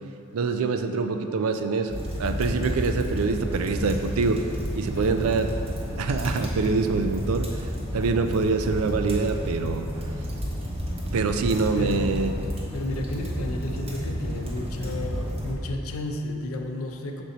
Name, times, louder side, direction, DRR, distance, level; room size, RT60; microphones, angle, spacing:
voice 1, 0.3-4.4 4.7-5.5 6.0-7.5 7.9-9.9 11.1-12.3, right 4 dB, 80° right, 7 dB, 0.4 m, -25 dB
sound 1, 1.9-15.5, equal, 25° right, 0.8 m, -31 dB
voice 2, 4.9-5.3 11.8-17.2, left 1 dB, 80° left, 3 dB, 0.6 m, -33 dB
6.1 x 4.2 x 3.9 m, 2.7 s
head